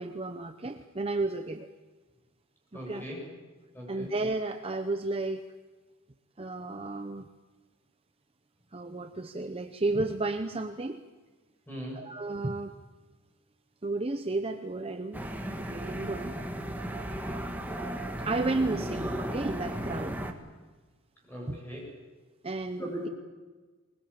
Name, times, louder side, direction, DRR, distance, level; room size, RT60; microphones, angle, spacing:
voice 1, 0.0-1.7 2.7-3.1 3.9-5.4 6.4-7.3 8.7-11.0 11.9-12.7 13.8-15.2 15.6-16.3 18.2-20.2 21.5-21.6 22.4-23.1, right 2 dB, 25° right, 7 dB, 0.7 m, -32 dB
voice 2, 2.7-3.3 3.7-4.1 11.7-12.0 21.3-21.9 22.8-23.1, equal, 10° left, -2 dB, 8.0 m, -39 dB
sound 1, 15.1-20.3, right 1 dB, 10° right, 1.5 m, -35 dB
22.0 x 20.5 x 8.8 m, 1.3 s
head